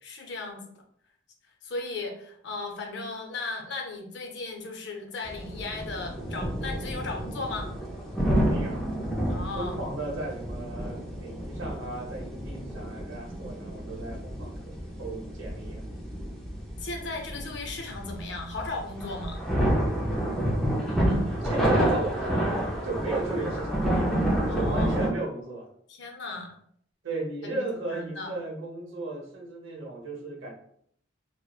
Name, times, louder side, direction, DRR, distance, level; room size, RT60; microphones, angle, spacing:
voice 1, 0.0-0.8 1.6-7.7 9.3-9.8 16.8-19.4 24.5-25.0 25.9-26.5 27.4-28.3, left 3 dB, 60° left, 2 dB, 0.5 m, -36 dB
sound 1, 5.2-25.1, right 1 dB, ahead, 0.4 m, -29 dB
voice 2, 8.2-8.9 9.5-15.9 21.4-23.8 24.5-25.7 27.0-30.5, right 2 dB, 80° right, 0 dB, 0.7 m, -35 dB
2.9 x 2.0 x 2.2 m, 0.66 s
head